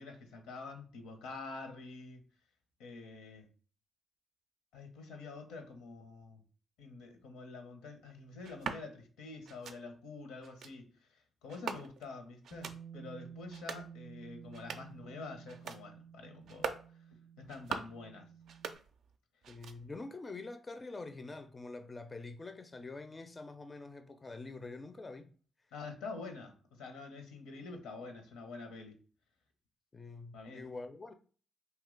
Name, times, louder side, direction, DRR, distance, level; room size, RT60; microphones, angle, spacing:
voice 1, 0.0-2.2 2.8-3.5 4.7-6.4 6.8-17.0 17.4-18.3 25.7-29.0 30.3-30.6, left 3 dB, 85° left, 0.7 m, -47 dB
sound 1, 8.4-8.8 9.4-9.8 10.4-10.7 11.5-12.1 12.4-12.8 13.4-13.9 14.4-15.0 15.4-15.8 16.4-16.9 17.4-18.0 18.4-19.2 19.4-20.0, right 6 dB, 70° right, 0.3 m, -43 dB
Bass guitar, 12.5-18.8, right 8 dB, 20° right, 0.5 m, -52 dB
voice 2, 19.5-25.3 29.9-31.1, left 3 dB, 30° left, 0.4 m, -46 dB
2.8 x 2.2 x 3.7 m
supercardioid pair, 55°, 0 cm